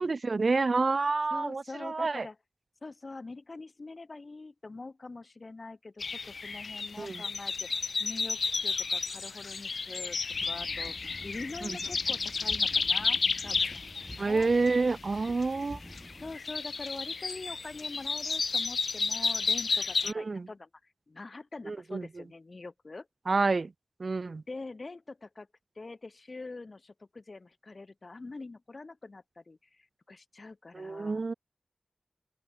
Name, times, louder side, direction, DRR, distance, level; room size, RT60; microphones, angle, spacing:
voice 1, 0.0-2.3 7.0-7.2 14.2-15.8 20.0-20.5 21.7-22.1 23.3-23.7 24.0-24.4 30.7-31.3, right 3 dB, 65° right, 0.9 m, -28 dB
voice 2, 1.3-2.4 2.8-10.2 10.4-14.5 16.2-23.1 24.5-25.5 25.8-31.2, left 3 dB, 55° left, 6.3 m, -44 dB
sound 1, 6.0-20.1, left 4 dB, 85° left, 0.5 m, -32 dB
sound 2, 10.3-16.4, equal, 5° left, 7.5 m, -48 dB
open air
wide cardioid pair, 60°, 0 cm